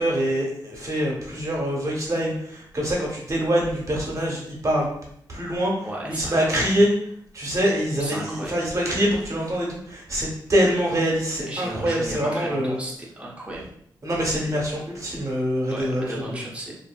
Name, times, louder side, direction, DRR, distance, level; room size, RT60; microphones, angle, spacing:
voice 1, 0.0-4.9 5.3-6.9 7.3-12.8 14.0-16.1, equal, 40° right, -3 dB, 1.0 m, -24 dB
voice 2, 5.8-6.6 8.0-8.6 11.5-13.6 15.7-16.7, right 1 dB, 15° right, -4 dB, 0.8 m, -34 dB
2.7 x 2.6 x 2.2 m, 0.68 s
cardioid pair, 70°, 8 cm